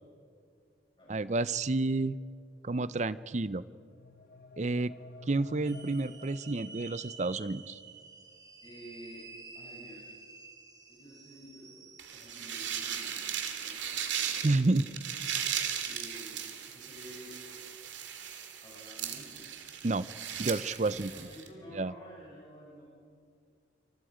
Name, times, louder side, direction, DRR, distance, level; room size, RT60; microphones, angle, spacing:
voice 1, 1.1-2.2 2.6-3.6 4.6-4.9 5.3-7.8 14.4-14.9 19.8-20.1 20.4-21.1 21.7-21.9, right 2 dB, 40° right, 16 dB, 0.5 m, -30 dB
sound 1, 3.6-7.5, left 4 dB, 55° left, 0.9 m, -52 dB
sound 2, 5.6-13.3, right 4 dB, 20° right, 2.4 m, -51 dB
voice 2, 8.6-9.2 9.5-10.1 10.9-11.8 12.1-14.9 15.8-16.4 16.7-17.4 18.6-19.4 20.8-22.8, equal, 25° left, -6 dB, 6.9 m, -51 dB
sound 3, 12.0-21.5, right 9 dB, 80° right, 2.2 m, -37 dB
28.0 x 25.5 x 5.1 m, 2.2 s
head